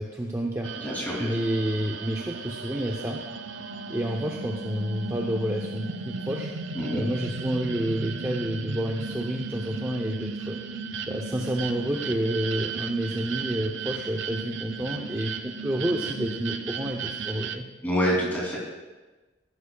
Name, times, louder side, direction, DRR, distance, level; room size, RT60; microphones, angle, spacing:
voice 1, 0.0-0.7 1.1-3.2 3.9-6.5 6.9-10.6 11.1-17.7, right 1 dB, 15° right, 0 dB, 0.6 m, -29 dB
sound 1, 0.6-17.6, right 4 dB, 75° right, 0.6 m, -35 dB
voice 2, 0.8-1.3 6.7-7.0 17.8-18.7, equal, 10° left, -4 dB, 2.8 m, -27 dB
14.5 x 11.5 x 2.3 m, 1.2 s
head